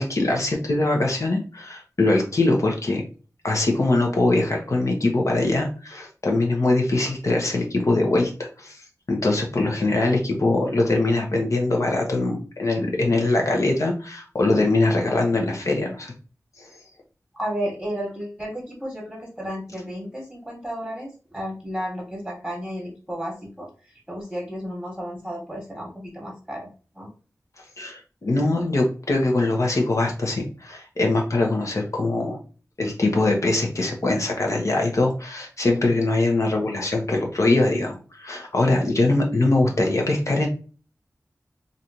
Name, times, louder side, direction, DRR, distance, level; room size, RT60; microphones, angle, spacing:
voice 1, 0.0-3.0 3.4-8.8 9.1-16.1 27.8-32.4 32.8-40.5, left 2 dB, 60° left, 1 dB, 0.8 m, -22 dB
voice 2, 17.3-26.7 26.9-27.1, equal, 5° right, -4 dB, 1.3 m, -33 dB
3.2 x 2.6 x 2.8 m, 0.37 s
wide cardioid pair, 85°, 6 cm